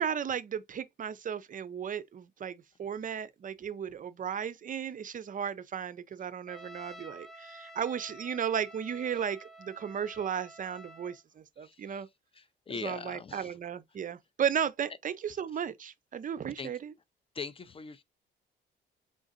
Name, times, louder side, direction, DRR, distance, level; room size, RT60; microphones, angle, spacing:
voice 1, 0.0-12.1 12.8-16.9, right 8 dB, 40° right, 0.5 m, -35 dB
Trumpet, 6.5-11.2, equal, ahead, 0.9 m, -50 dB
voice 2, 11.6-12.0 12.3-13.5 16.6-16.7 17.3-18.0, left 5 dB, 30° left, 0.4 m, -41 dB
3.8 x 3.6 x 2.4 m
cardioid pair, 90°, 20 cm